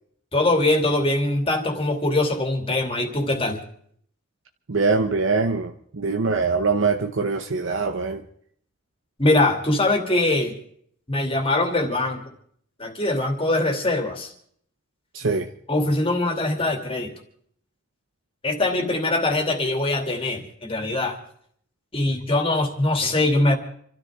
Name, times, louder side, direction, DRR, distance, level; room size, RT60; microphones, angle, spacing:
voice 1, 0.3-3.6 9.2-10.5 11.1-12.2 12.8-14.3 15.7-17.1 18.4-21.2 21.9-23.5, left 2 dB, 25° left, 4 dB, 2.4 m, -22 dB
voice 2, 4.7-8.2 15.1-15.5, right 4 dB, 65° right, 6 dB, 0.9 m, -23 dB
28.0 x 13.5 x 3.6 m, 0.63 s
head